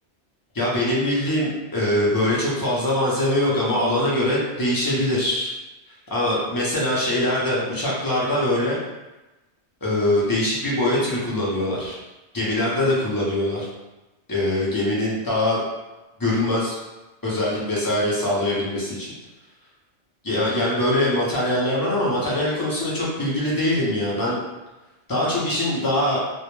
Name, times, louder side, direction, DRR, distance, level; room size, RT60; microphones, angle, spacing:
voice 1, 0.5-5.5 6.1-8.8 9.8-12.0 12.3-13.7 14.3-15.6 16.2-16.8 17.2-19.1 20.2-24.4 25.1-26.2, left 1 dB, 35° left, -6 dB, 0.3 m, -23 dB
2.1 x 2.1 x 2.9 m, 1.1 s
omnidirectional pair, 1.2 m